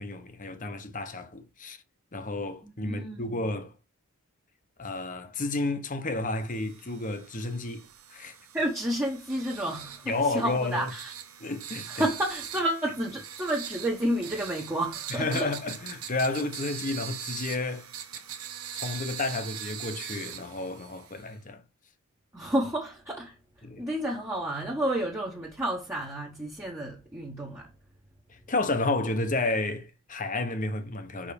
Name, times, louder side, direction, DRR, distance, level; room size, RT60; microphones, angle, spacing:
voice 1, 0.0-1.8 2.1-3.7 4.8-8.4 10.1-10.9 11.4-12.0 15.1-17.9 18.7-21.6 23.6-23.9 28.3-31.3, left 2 dB, 35° left, 1.0 m, -31 dB
voice 2, 2.8-3.5 8.5-11.1 11.9-15.5 22.3-27.7, right 1 dB, 10° right, 1.1 m, -31 dB
sound 1, 6.5-21.4, right 9 dB, 80° right, 1.0 m, -42 dB
5.5 x 5.0 x 5.2 m
head